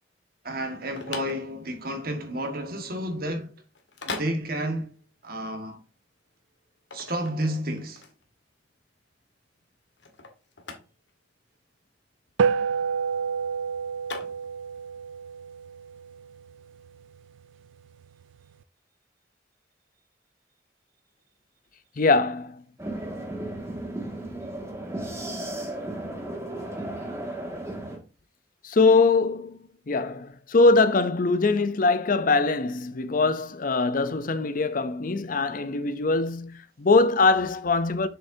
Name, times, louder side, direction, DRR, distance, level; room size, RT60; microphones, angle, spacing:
voice 1, 0.4-3.5 4.0-4.9 5.2-5.8 6.9-8.1, right 1 dB, 50° right, 1.7 m, -31 dB
sound 1, 0.6-14.9, left 4 dB, 70° left, 1.6 m, -42 dB
sound 2, 12.4-17.0, right 6 dB, 80° right, 0.3 m, -29 dB
voice 2, 22.0-22.6 28.6-29.6 29.9-38.1, left 3 dB, 45° left, 0.6 m, -22 dB
sound 3, 22.8-28.0, right 1 dB, 15° right, 1.9 m, -34 dB
7.8 x 6.6 x 2.7 m
head